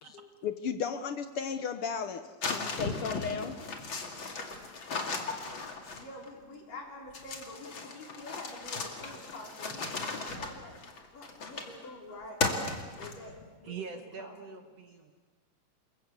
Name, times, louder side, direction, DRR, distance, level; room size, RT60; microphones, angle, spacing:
voice 1, 0.0-3.6, left 6 dB, 65° left, 9 dB, 1.4 m, -35 dB
sound 1, 2.4-6.3 7.1-11.8 12.4-13.4, left 3 dB, 40° left, 2.9 m, -36 dB
voice 2, 5.9-10.8 11.1-12.4 12.9-14.6, left 2 dB, 90° left, -1 dB, 5.9 m, -47 dB
voice 3, 13.6-15.1, right 6 dB, 60° right, 5 dB, 2.1 m, -43 dB
28.0 x 22.5 x 8.3 m, 1.3 s
omnidirectional pair, 3.7 m